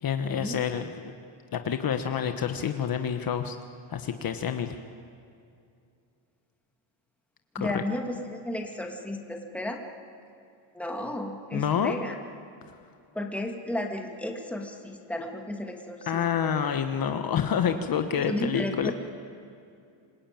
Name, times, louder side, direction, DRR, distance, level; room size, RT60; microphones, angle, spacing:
voice 1, 0.0-1.0 1.5-3.6 3.9-4.8 7.5-7.8 11.5-11.9 16.1-18.9, left 8 dB, 45° left, 7 dB, 1.3 m, -28 dB
voice 2, 7.6-9.8 10.7-12.1 13.1-16.6 18.3-18.9, left 1 dB, 5° left, 2 dB, 2.3 m, -33 dB
27.0 x 23.0 x 9.1 m, 2.5 s
cardioid pair, 160°, 47 cm